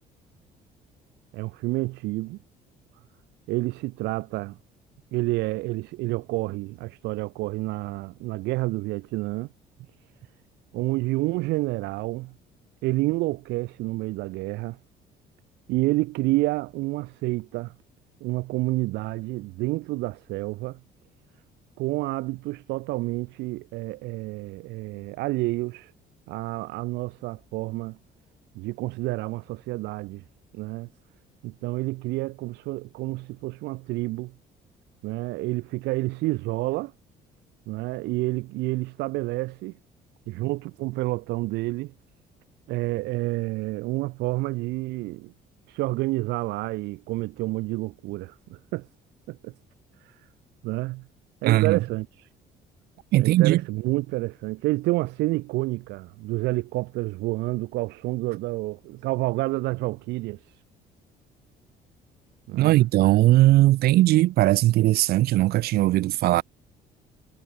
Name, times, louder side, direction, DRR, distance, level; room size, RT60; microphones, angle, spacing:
voice 1, 1.3-2.4 3.5-4.6 5.1-9.5 10.7-12.3 12.8-14.8 15.7-17.7 18.2-20.8 21.8-25.9 26.3-28.0 28.5-30.2 30.5-30.9 31.4-34.3 35.0-36.9 37.7-39.8 40.3-41.9 42.7-45.3 45.7-48.9 49.3-49.5 50.0-50.1 50.6-51.1 51.4-52.3 53.2-60.6 62.5-62.8, right 21 dB, 90° right, 1.8 m, -29 dB
voice 2, 51.4-51.8 53.1-53.6 62.5-66.4, right 16 dB, 65° right, 0.5 m, -19 dB
cardioid pair, 110°, 17 cm